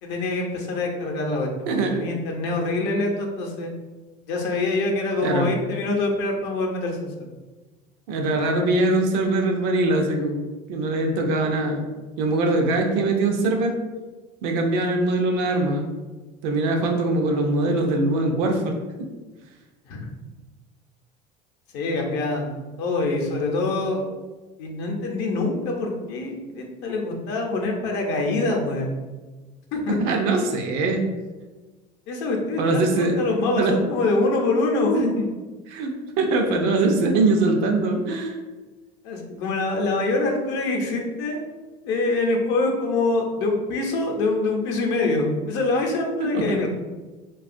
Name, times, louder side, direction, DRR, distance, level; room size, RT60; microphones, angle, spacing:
voice 1, 0.0-3.7 4.3-7.3 19.8-20.1 21.7-24.0 24.6-28.9 29.7-30.0 32.1-35.3 39.0-41.4 41.8-46.7, left 2 dB, 65° left, 1 dB, 0.6 m, -25 dB
voice 2, 5.2-5.5 8.1-10.4 10.7-11.8 12.2-13.7 14.4-15.9 16.4-18.8 30.0-31.0 32.6-33.1 33.6-33.7 35.7-38.4 46.3-46.6, right 2 dB, 75° right, 3 dB, 0.5 m, -22 dB
2.7 x 2.3 x 2.5 m, 1.2 s
supercardioid pair, 115°, 20 cm